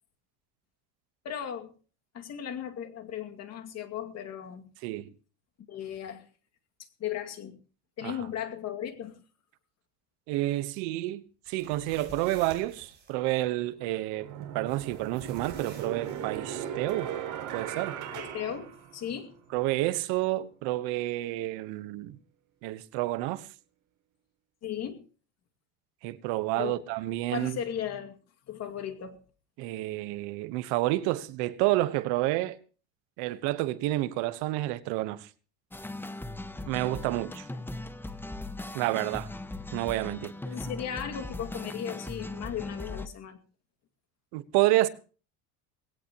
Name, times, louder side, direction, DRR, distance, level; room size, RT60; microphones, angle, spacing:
voice 1, 1.2-1.7 2.1-4.7 5.7-6.3 7.0-7.6 8.0-9.2 18.1-19.4 24.6-25.0 26.5-26.8 27.3-28.2 28.5-29.2 40.4-43.4, left 9 dB, 40° left, 2.3 m, -36 dB
voice 2, 10.3-14.3 14.5-17.1 17.5-17.9 19.5-22.2 22.6-23.5 26.0-27.6 29.6-32.6 33.2-35.3 36.7-37.5 38.7-39.3 39.7-40.3 44.3-44.9, right 17 dB, 70° right, 1.3 m, -29 dB
sound 1, 11.5-13.1 14.7-16.4, right 3 dB, 25° right, 6.1 m, -49 dB
sound 2, 14.2-19.4, right 9 dB, 50° right, 4.5 m, -38 dB
sound 3, 35.7-43.1, left 2 dB, 5° left, 0.8 m, -39 dB
19.5 x 17.0 x 3.0 m
cardioid pair, 145°, 40 cm